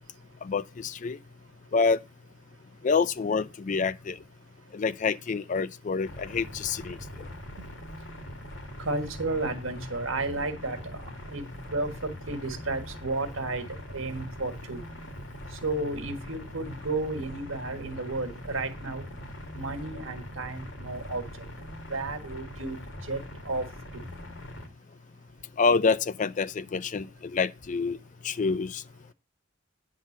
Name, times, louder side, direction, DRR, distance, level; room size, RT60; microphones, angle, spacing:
voice 1, 0.4-1.2 1.7-2.0 2.8-4.2 4.7-7.3 25.6-28.0 28.2-28.8, left 4 dB, 40° left, 0.4 m, -27 dB
sound 1, 6.0-24.7, left 1 dB, 65° left, 1.8 m, -42 dB
voice 2, 8.8-11.4 11.7-13.7 13.9-14.8 15.6-19.0 19.5-21.2 21.9-22.8 23.1-23.6 23.9-24.0, right 2 dB, 80° right, 1.6 m, -32 dB
9.8 x 3.8 x 7.3 m
head